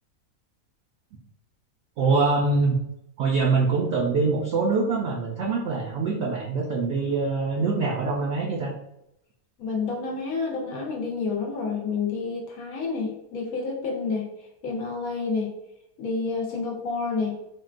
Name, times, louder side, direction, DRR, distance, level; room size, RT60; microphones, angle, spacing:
voice 1, 2.0-2.8 3.2-8.8, right 4 dB, 65° right, -2 dB, 0.7 m, -24 dB
voice 2, 9.6-14.3 14.6-15.5 16.0-17.4, left 4 dB, 80° left, 0 dB, 1.0 m, -29 dB
3.6 x 2.1 x 2.4 m, 0.82 s
omnidirectional pair, 1.5 m